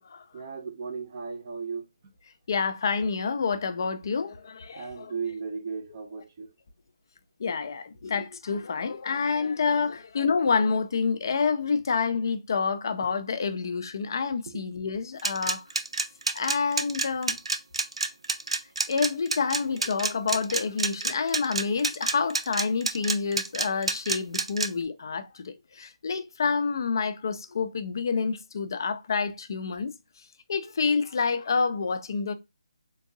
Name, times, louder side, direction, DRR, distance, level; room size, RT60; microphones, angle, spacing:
voice 1, 0.3-1.8 4.7-6.5, right 5 dB, 25° right, 0.6 m, -35 dB
voice 2, 2.5-5.1 7.4-15.6 16.3-17.4 18.9-29.9 30.5-32.3, left 5 dB, 40° left, 0.4 m, -28 dB
sound 1, 15.2-24.7, right 3 dB, 75° right, 0.6 m, -28 dB
3.7 x 2.6 x 2.6 m
hypercardioid pair, 170°, 3 cm